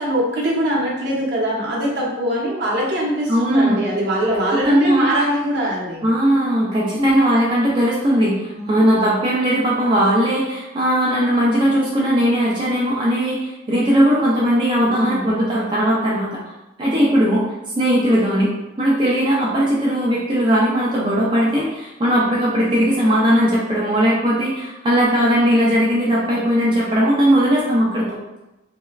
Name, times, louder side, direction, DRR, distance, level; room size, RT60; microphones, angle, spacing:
voice 1, 0.0-6.1 6.9-7.1 8.5-8.7 14.9-15.3, right 1 dB, 65° right, -4 dB, 0.7 m, -22 dB
voice 2, 3.3-3.8 4.6-5.1 6.0-16.4 16.8-17.5 17.8-18.5 18.8-28.1, equal, 25° right, -6 dB, 0.4 m, -18 dB
2.9 x 2.1 x 2.3 m, 1.0 s
head